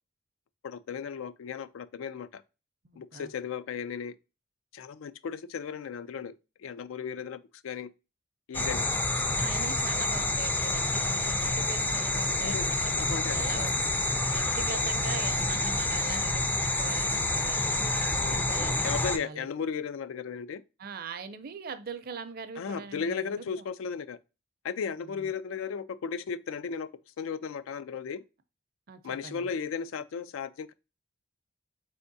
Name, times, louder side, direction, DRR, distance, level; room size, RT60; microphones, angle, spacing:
voice 1, 0.6-2.4 3.0-4.1 4.7-7.9 8.5-8.8 12.4-13.7 18.2-18.5 18.8-20.6 22.6-24.2 24.6-26.9 27.2-28.2 29.0-30.7, left 6 dB, 90° left, 0.4 m, -35 dB
voice 2, 2.8-3.3 9.4-13.8 14.3-18.7 19.0-19.5 20.8-23.7 25.0-25.3 28.9-29.5, right 5 dB, 50° right, 0.5 m, -42 dB
sound 1, 8.5-19.2, left 2 dB, 10° left, 0.3 m, -28 dB
4.3 x 3.5 x 2.6 m
head